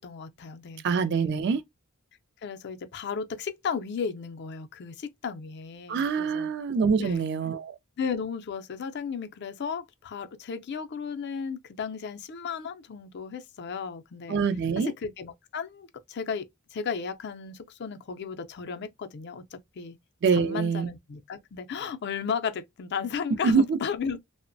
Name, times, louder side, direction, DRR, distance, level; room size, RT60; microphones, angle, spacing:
voice 1, 0.0-1.3 2.4-6.5 6.9-7.3 8.0-14.4 15.0-20.0 20.3-24.2, left 6 dB, 50° left, 0.4 m, -35 dB
voice 2, 0.8-1.6 5.9-7.8 14.3-14.9 20.2-20.9 23.4-23.8, right 5 dB, 50° right, 0.3 m, -25 dB
2.9 x 2.0 x 2.5 m
head